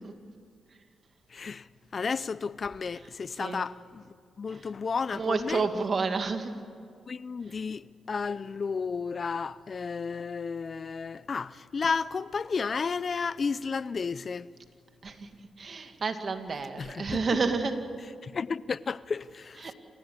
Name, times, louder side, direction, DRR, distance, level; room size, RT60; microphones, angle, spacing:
voice 1, 1.3-1.6 1.9-4.0 4.4-5.7 7.1-14.5 16.8-17.2 18.2-19.7, left 5 dB, 50° left, 0.5 m, -32 dB
voice 2, 5.1-6.5 15.0-15.3 15.6-17.7 19.6-19.7, right 4 dB, 50° right, 2.1 m, -30 dB
28.5 x 15.5 x 8.4 m
cardioid pair, 60°, 0 cm